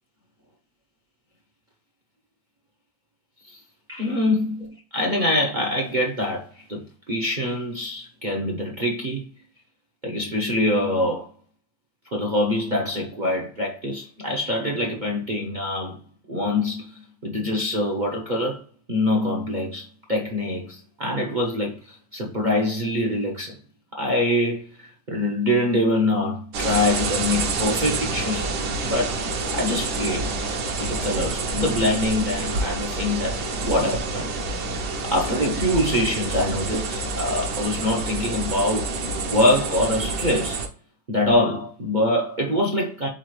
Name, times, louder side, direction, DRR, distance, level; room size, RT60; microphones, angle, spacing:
voice 1, 3.9-9.3 10.0-11.3 12.1-16.0 16.3-18.6 18.9-23.6 23.9-28.5 28.8-29.2 29.5-30.3 30.8-34.3 35.0-36.8 37.1-40.6 41.1-43.1, left 1 dB, 45° right, 0.6 m, -24 dB
sound 1, 26.5-40.7, right 3 dB, 65° right, 1.4 m, -28 dB
4.3 x 4.0 x 3.1 m
omnidirectional pair, 2.0 m